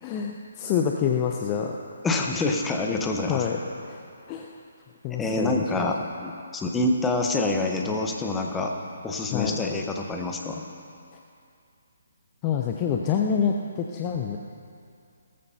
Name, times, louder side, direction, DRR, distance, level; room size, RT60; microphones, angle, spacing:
voice 1, 0.0-1.8 3.3-3.6 3.9-4.0 4.3-4.6 5.0-5.9 9.3-9.6 12.4-14.4, left 7 dB, 25° left, 2 dB, 0.7 m, -27 dB
voice 2, 2.0-3.4 5.2-8.7 9.0-10.6, left 2 dB, 10° left, 1 dB, 1.1 m, -26 dB
18.5 x 14.0 x 2.9 m, 2.4 s
figure-of-eight pair, 145°, 0 cm